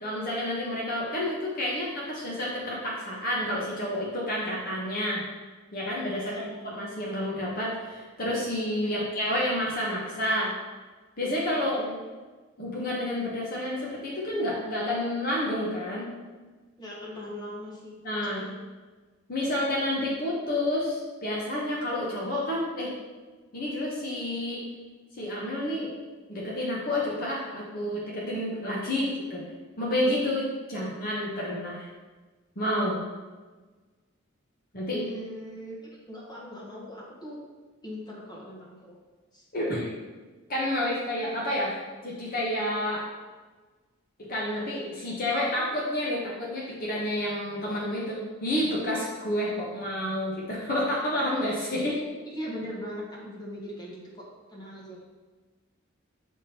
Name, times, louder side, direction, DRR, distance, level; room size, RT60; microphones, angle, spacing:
voice 1, 0.0-5.2 5.7-10.5 11.2-11.8 12.6-16.1 18.0-18.5 19.3-22.9 23.5-24.6 25.1-25.9 26.3-29.4 29.8-31.9 32.6-33.0 34.7-35.0 39.5-39.9 40.5-43.0 44.2-52.0, left 1 dB, 45° left, -5 dB, 1.0 m, -29 dB
voice 2, 6.1-6.5 8.8-9.1 11.6-12.0 16.8-18.5 34.9-37.4 37.8-39.0 39.3-39.4 51.7-51.8 52.2-55.0, equal, 20° left, -4 dB, 1.0 m, -40 dB
6.9 x 3.7 x 4.2 m, 1.3 s
head